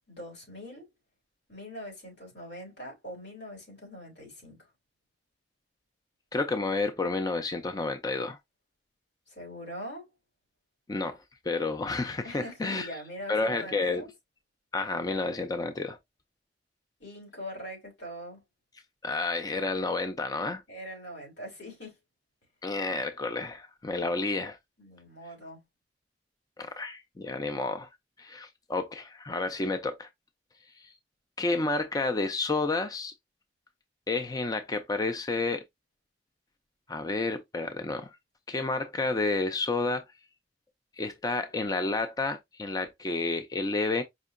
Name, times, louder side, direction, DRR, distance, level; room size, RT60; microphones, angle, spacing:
voice 1, 0.1-0.9 1.5-4.7 9.3-10.1 12.2-14.1 17.0-18.4 20.7-22.0 24.8-25.6, equal, 85° left, 3.1 m, -42 dB
voice 2, 6.3-8.4 10.9-12.9 13.3-14.0 14.7-16.0 19.0-20.6 22.6-24.6 26.6-27.9 28.2-30.1 30.8-30.9 31.4-33.1 34.1-35.6 36.9-38.2 38.5-40.0 41.0-44.0, left 3 dB, 20° left, 0.4 m, -30 dB
5.1 x 2.7 x 2.5 m
head